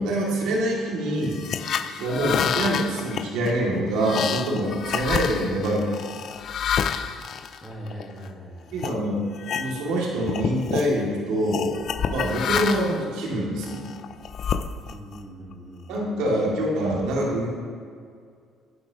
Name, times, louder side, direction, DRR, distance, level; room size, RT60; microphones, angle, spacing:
voice 1, 0.0-1.4 2.0-5.8 8.7-9.2 9.5-11.8 12.1-13.9 15.9-17.5, right 1 dB, 85° right, -3 dB, 2.3 m, -25 dB
sound 1, 1.2-8.3 8.8-9.0 9.3-10.0 10.2-10.9 11.5-13.0 13.6-15.2, left 8 dB, 45° left, 0.4 m, -29 dB
voice 2, 5.2-5.7 7.6-8.7 14.8-16.1, equal, 10° right, -1 dB, 1.5 m, -41 dB
11.0 x 10.5 x 2.9 m, 2.2 s
cardioid pair, 135°, 0 cm